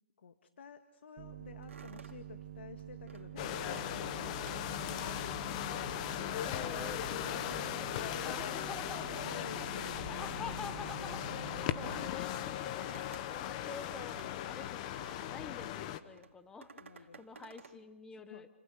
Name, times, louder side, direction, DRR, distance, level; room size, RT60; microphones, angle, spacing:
voice 1, 0.2-5.9 6.4-10.1 13.6-13.7 16.8-17.2 18.1-18.5, left 7 dB, 65° left, 8 dB, 1.9 m, -52 dB
sound 1, 1.2-12.1, right 12 dB, 40° right, 1.0 m, -48 dB
sound 2, 1.6-5.9 6.4-7.9 8.2-15.6 16.1-17.8, right 5 dB, 80° right, 2.4 m, -56 dB
sound 3, 3.4-16.0, left 11 dB, 35° left, 1.3 m, -38 dB
voice 2, 6.4-9.0 9.5-18.5, left 5 dB, 10° left, 11 dB, 1.2 m, -48 dB
29.5 x 26.0 x 6.6 m, 0.94 s
hypercardioid pair, 150°, 7 cm